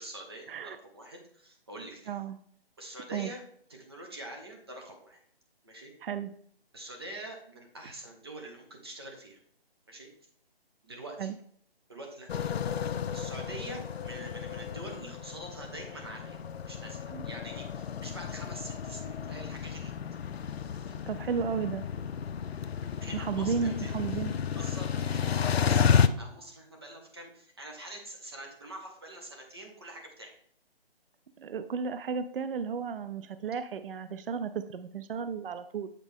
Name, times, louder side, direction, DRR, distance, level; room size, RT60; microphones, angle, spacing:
voice 1, 0.0-2.2 2.8-3.4 3.7-5.2 5.6-5.9 6.7-9.4 9.9-10.1 10.8-11.3 11.9-12.5 13.1-20.0 20.7-21.0 23.0-24.3 24.5-30.3, right 1 dB, 25° right, 2 dB, 0.9 m, -45 dB
sound 1, 12.3-26.1, left 7 dB, 85° left, 0.5 m, -32 dB
voice 2, 21.1-21.8 23.1-24.3 31.4-35.9, right 6 dB, 65° right, 12 dB, 0.4 m, -33 dB
8.2 x 4.1 x 3.5 m, 0.65 s
hypercardioid pair, 175°, 31 cm